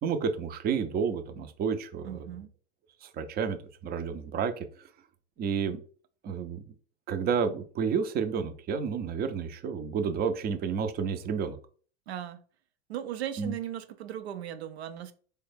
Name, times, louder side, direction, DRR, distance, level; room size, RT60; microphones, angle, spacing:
voice 1, 0.0-2.3 3.0-3.6 3.8-4.6 5.4-5.8 6.2-6.6 7.1-11.6 13.4-13.6, right 6 dB, 30° right, 0.5 m, -30 dB
voice 2, 2.0-2.5 12.1-12.4 12.9-15.1, right 11 dB, 85° right, 0.6 m, -37 dB
3.5 x 2.2 x 3.3 m
hypercardioid pair, 95°, 31 cm